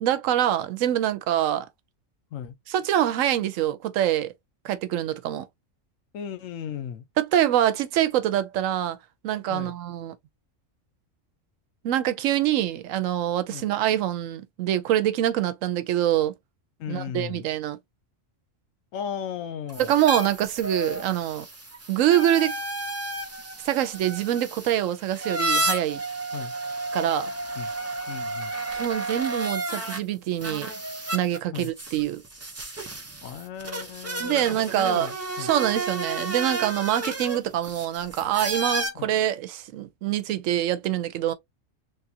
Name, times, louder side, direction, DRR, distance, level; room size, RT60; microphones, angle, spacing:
voice 1, 0.0-1.7 2.7-4.3 4.6-5.4 7.2-9.0 9.2-10.1 11.8-16.3 16.9-17.8 19.9-21.5 21.9-22.5 23.6-26.0 26.9-27.3 28.7-30.7 31.1-32.2 34.2-35.1 35.4-41.3, right 12 dB, 85° right, 1.0 m, -25 dB
voice 2, 6.1-7.1 9.5-9.8 13.5-13.7 16.8-17.5 18.9-19.9 26.3-26.5 27.5-27.7 28.1-28.5 31.5-31.7 33.2-35.5 38.9-39.1, left 8 dB, 90° left, 1.1 m, -36 dB
sound 1, 19.7-30.0 30.4-38.9, right 2 dB, 25° right, 0.3 m, -32 dB
3.4 x 2.4 x 2.7 m
omnidirectional pair, 1.3 m